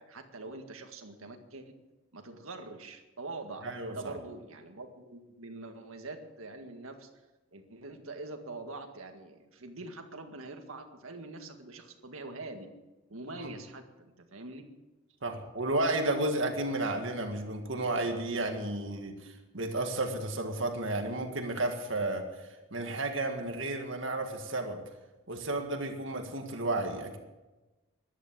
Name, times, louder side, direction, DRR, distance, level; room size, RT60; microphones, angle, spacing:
voice 1, 0.0-1.7 2.1-7.1 7.5-12.7 13.1-14.6, right 2 dB, 90° right, 5 dB, 1.9 m, -44 dB
voice 2, 3.6-4.1 13.4-13.5 15.2-22.3 22.7-24.8 25.3-27.2, right 2 dB, 70° right, 4 dB, 1.9 m, -32 dB
15.0 x 11.5 x 7.6 m, 1.1 s
head